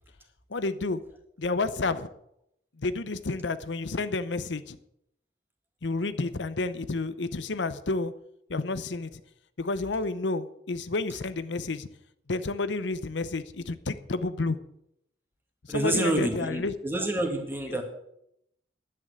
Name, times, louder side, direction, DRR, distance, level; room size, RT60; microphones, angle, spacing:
voice 1, 0.5-1.0 1.4-2.1 2.8-4.8 5.8-8.1 8.5-9.2 9.6-11.9 12.3-14.6 15.7-16.8 17.7-17.8, left 3 dB, 90° left, 13 dB, 0.8 m, -30 dB
voice 2, 15.7-17.8, right 1 dB, 10° right, 3 dB, 1.9 m, -28 dB
10.5 x 9.0 x 8.0 m, 0.77 s
head